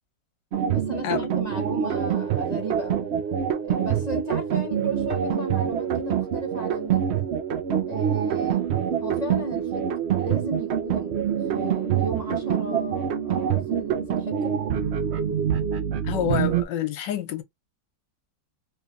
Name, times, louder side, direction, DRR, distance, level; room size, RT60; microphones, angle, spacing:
sound 1, 0.5-16.6, right 9 dB, 90° right, 0.5 m, -25 dB
voice 1, 0.6-3.1 3.6-7.3 7.9-8.6 9.0-14.5, right 2 dB, 35° right, 0.7 m, -35 dB
voice 2, 16.0-17.4, left 11 dB, 80° left, 1.4 m, -27 dB
3.2 x 3.2 x 2.4 m
omnidirectional pair, 1.9 m